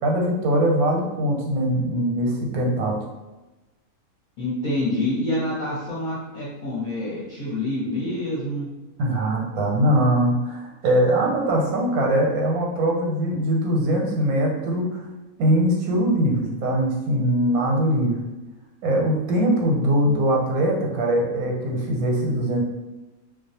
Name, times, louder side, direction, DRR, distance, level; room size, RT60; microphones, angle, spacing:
voice 1, 0.0-3.0 9.0-15.0 15.4-18.2 18.8-22.6, right 1 dB, 90° right, 0 dB, 1.1 m, -22 dB
voice 2, 4.4-8.7, left 1 dB, 45° left, -10 dB, 0.7 m, -27 dB
2.3 x 2.2 x 2.7 m, 1.1 s
omnidirectional pair, 1.5 m